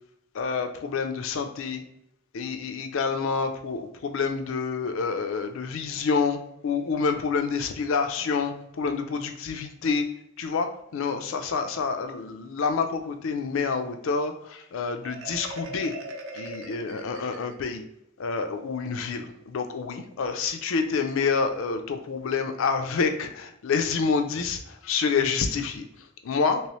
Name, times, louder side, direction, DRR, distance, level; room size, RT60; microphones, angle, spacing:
voice 1, 0.3-1.8 2.3-6.4 6.6-10.1 10.4-15.9 16.3-17.8 18.2-26.6, left 5 dB, 65° left, 7 dB, 0.4 m, -28 dB
Marimba xylophone, 15.0-17.8, right 1 dB, 65° right, 0.5 m, -40 dB
3.1 x 3.0 x 3.0 m, 0.78 s
head